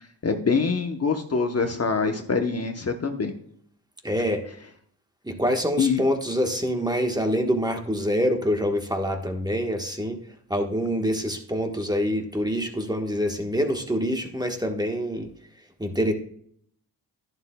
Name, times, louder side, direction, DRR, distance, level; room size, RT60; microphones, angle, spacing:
voice 1, 0.2-3.3 5.8-6.0, left 5 dB, 35° left, 5 dB, 0.9 m, -24 dB
voice 2, 4.0-4.4 5.2-10.2 10.5-15.3 15.8-16.1, equal, 10° right, 3 dB, 1.2 m, -25 dB
11.0 x 11.0 x 2.2 m, 0.64 s
cardioid pair, 90°, 41 cm